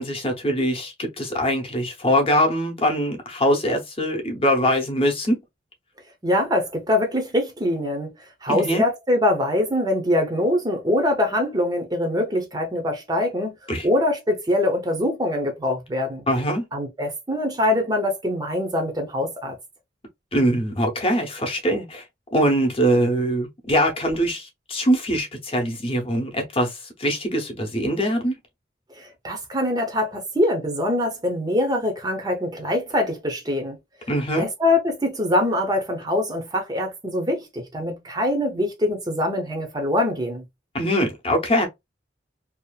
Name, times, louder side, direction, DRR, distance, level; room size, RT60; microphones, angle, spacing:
voice 1, 0.0-5.4 8.5-8.8 13.7-13.9 16.3-16.6 20.3-22.0 22.3-28.4 34.1-34.5 40.7-41.7, equal, 30° left, 0.8 m, -22 dB
voice 2, 6.2-16.2 16.7-19.5 29.0-33.8 34.4-40.4, left 1 dB, 20° right, 0.6 m, -23 dB
2.7 x 2.4 x 2.2 m
head